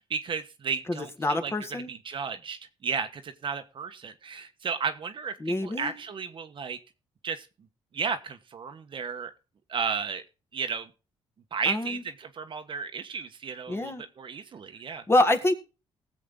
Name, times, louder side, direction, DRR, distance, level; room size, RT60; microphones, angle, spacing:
voice 1, 0.0-6.8 7.2-7.5 7.9-9.3 9.7-10.2 10.5-10.9 11.5-15.0, right 6 dB, 50° right, 8 dB, 1.3 m, -33 dB
voice 2, 0.9-1.9 5.4-5.9 11.7-12.0 13.7-14.0 15.1-15.5, left 1 dB, 20° left, 6 dB, 1.9 m, -26 dB
19.0 x 7.7 x 3.8 m, 0.33 s
cardioid pair, 95°, 11 cm